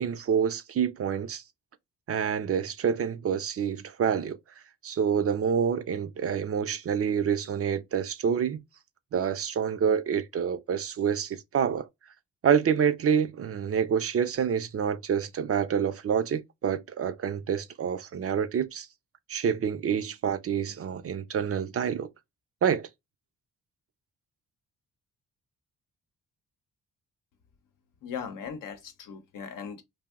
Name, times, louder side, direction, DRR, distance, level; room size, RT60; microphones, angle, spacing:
voice 1, 0.0-1.4 2.1-4.4 4.8-8.6 9.1-11.9 12.4-18.9 19.3-22.1 22.6-22.9, right 7 dB, 45° right, 0.4 m, -27 dB
voice 2, 28.0-29.8, left 7 dB, 75° left, 0.7 m, -38 dB
2.6 x 2.0 x 3.5 m
cardioid pair, 75°, 33 cm